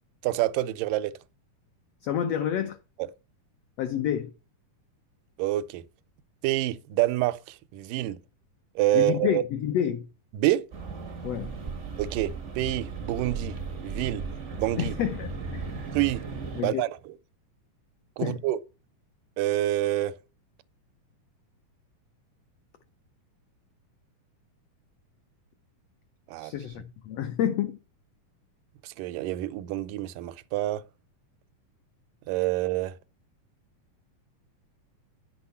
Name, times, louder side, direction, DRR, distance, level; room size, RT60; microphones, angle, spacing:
voice 1, 0.2-1.1 5.4-5.8 6.4-8.2 8.8-9.4 10.3-10.7 12.0-13.6 13.8-14.2 14.6-14.9 15.9-16.2 16.6-17.1 18.2-18.6 19.4-20.1 26.3-26.5 28.8-30.8 32.3-32.9, right 14 dB, 80° right, 2.2 m, -27 dB
voice 2, 2.0-2.8 3.8-4.3 8.9-10.1 11.2-11.5 14.8-15.7 16.5-16.8 18.2-18.4 26.4-27.8, left 9 dB, 85° left, 1.4 m, -29 dB
sound 1, 10.7-16.6, right 4 dB, 65° right, 0.7 m, -36 dB
10.5 x 6.2 x 5.5 m
omnidirectional pair, 3.8 m